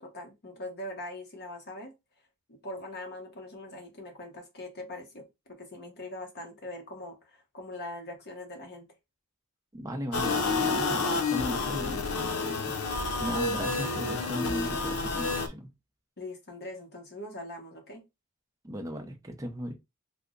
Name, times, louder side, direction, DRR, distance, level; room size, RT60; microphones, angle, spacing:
voice 1, 0.0-1.9 2.5-8.9 16.2-18.0, left 1 dB, 45° left, 1.0 m, -42 dB
voice 2, 9.7-12.8 13.2-15.7 18.6-19.7, equal, 15° right, 0.5 m, -36 dB
sound 1, 10.1-15.5, left 3 dB, 90° left, 0.6 m, -29 dB
3.4 x 2.1 x 3.7 m
head